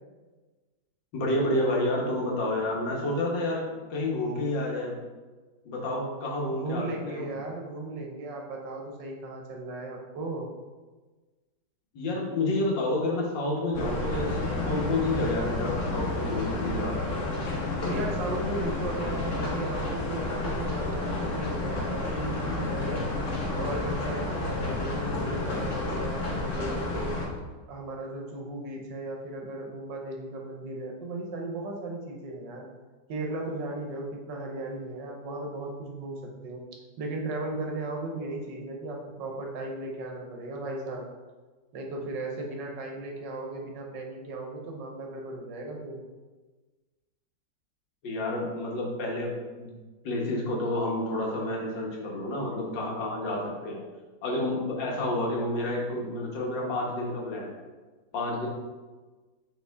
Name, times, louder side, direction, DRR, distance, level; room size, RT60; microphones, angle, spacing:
voice 1, 1.1-5.0 5.7-7.3 11.9-17.3 48.0-49.3 49.6-49.8 50.0-53.8 54.2-57.6 58.1-58.5, left 1 dB, 80° left, -2 dB, 2.0 m, -29 dB
voice 2, 6.5-10.5 17.9-23.0 23.5-27.2 27.7-32.7 33.1-36.6 37.0-41.1 41.7-46.0, right 2 dB, 75° right, 1 dB, 1.6 m, -36 dB
sound 1, 13.7-27.3, left 2 dB, 50° left, 1.3 m, -30 dB
6.6 x 4.3 x 3.5 m, 1.3 s
omnidirectional pair, 2.0 m